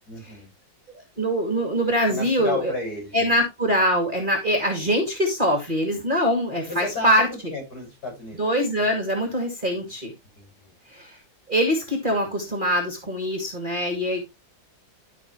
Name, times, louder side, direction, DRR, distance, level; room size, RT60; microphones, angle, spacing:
voice 1, 0.1-0.5 2.1-3.3 6.7-8.4 9.7-9.9 10.3-10.7, left 2 dB, 50° left, 6.5 m, -34 dB
voice 2, 1.2-2.7 3.1-7.5 8.4-10.1 10.9-11.2 11.5-14.2, equal, 25° right, 2.4 m, -23 dB
12.5 x 6.0 x 3.1 m
omnidirectional pair, 2.1 m